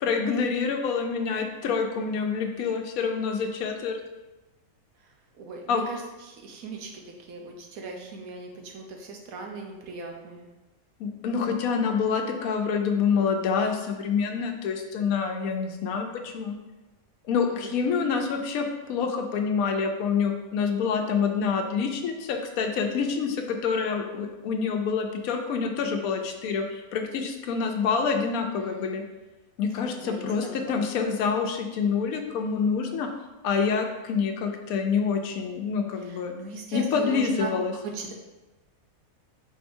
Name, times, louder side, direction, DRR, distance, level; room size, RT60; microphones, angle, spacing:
voice 1, 0.0-4.0 5.7-5.8 11.0-16.6 17.2-29.0 29.6-33.1 33.4-36.3 36.7-37.7, left 5 dB, 85° left, 4 dB, 1.0 m, -27 dB
voice 2, 5.0-10.5 17.5-17.9 28.4-29.0 29.7-30.8 36.0-37.5 37.8-38.1, right 4 dB, 85° right, 2 dB, 1.2 m, -39 dB
4.6 x 4.2 x 2.6 m, 1.1 s
omnidirectional pair, 1.5 m